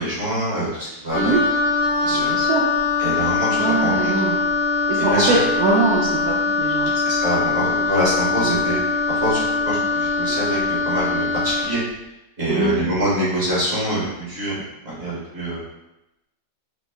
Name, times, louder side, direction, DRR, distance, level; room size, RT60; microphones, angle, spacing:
voice 1, 0.0-1.3 2.0-2.3 3.0-4.1 5.1-5.4 6.9-8.8 9.2-11.8 12.4-14.5 14.8-15.6, equal, 40° right, -7 dB, 1.1 m, -24 dB
Wind instrument woodwind instrument, 1.1-11.7, left 4 dB, 85° left, 1.3 m, -22 dB
voice 2, 2.1-2.6 3.6-4.4 4.9-6.9 8.4-8.6 12.5-12.7, right 3 dB, 75° right, -4 dB, 0.9 m, -22 dB
3.6 x 2.0 x 3.4 m, 0.93 s
omnidirectional pair, 2.0 m